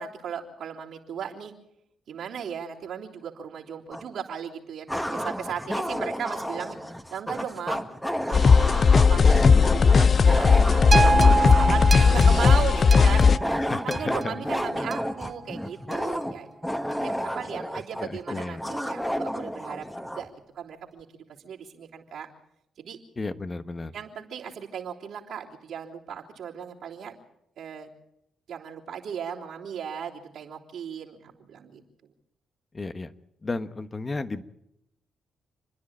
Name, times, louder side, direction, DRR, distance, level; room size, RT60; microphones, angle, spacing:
voice 1, 0.0-1.5 2.1-7.8 8.2-13.2 13.8-16.6 17.0-19.9 20.1-21.1 21.4-22.3 22.8-23.0 23.9-27.2 27.6-27.9 28.5-31.8, right 8 dB, 75° right, -4 dB, 3.4 m, -37 dB
sound 1, 3.9-4.0 4.9-20.3, equal, 5° left, 1.6 m, -31 dB
sound 2, 8.3-13.4, left 5 dB, 50° left, 0.7 m, -17 dB
sound 3, 10.9-15.2 15.9-16.0, right 4 dB, 40° right, 0.7 m, -27 dB
voice 2, 13.6-14.4 18.0-18.6 23.2-23.9 32.7-33.1 33.4-34.4, left 3 dB, 30° left, 11 dB, 1.3 m, -33 dB
28.5 x 10.5 x 8.8 m, 0.81 s
supercardioid pair, 60°, 0 cm